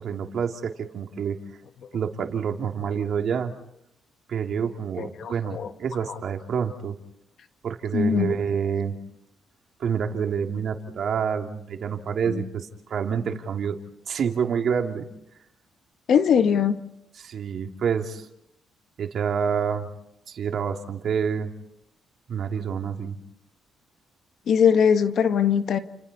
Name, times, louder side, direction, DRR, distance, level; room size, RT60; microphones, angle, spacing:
voice 1, 0.0-1.4 1.9-3.5 4.3-6.9 7.6-8.9 9.8-13.8 14.1-15.1 17.2-18.3 19.0-19.9 20.3-21.5 22.3-23.2, right 7 dB, 60° right, 4 dB, 2.7 m, -27 dB
voice 2, 5.0-5.7 6.1-6.2 7.9-8.4 12.3-12.5 16.1-16.8 24.5-25.8, left 7 dB, 60° left, 8 dB, 1.7 m, -21 dB
30.0 x 29.5 x 4.2 m, 0.83 s
cardioid pair, 95°, 0 cm